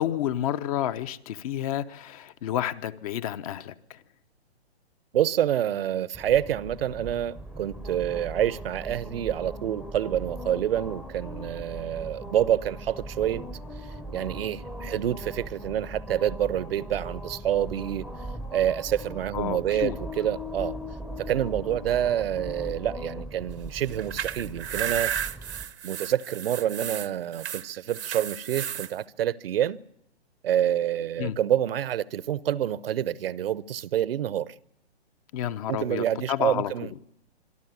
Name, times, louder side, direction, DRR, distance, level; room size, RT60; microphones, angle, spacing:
voice 1, 0.0-4.0 19.3-20.0 31.2-31.4 35.3-36.7, left 11 dB, 35° left, 0.8 m, -30 dB
voice 2, 5.1-13.4 14.1-18.0 18.5-20.8 21.2-25.1 25.8-29.8 30.4-34.5 35.7-36.9, right 11 dB, 60° right, 0.8 m, -27 dB
sound 1, 6.1-25.7, equal, ahead, 0.7 m, -39 dB
sound 2, 23.9-28.9, right 9 dB, 85° right, 1.1 m, -33 dB
26.0 x 12.0 x 9.4 m
hypercardioid pair, 145°, 32 cm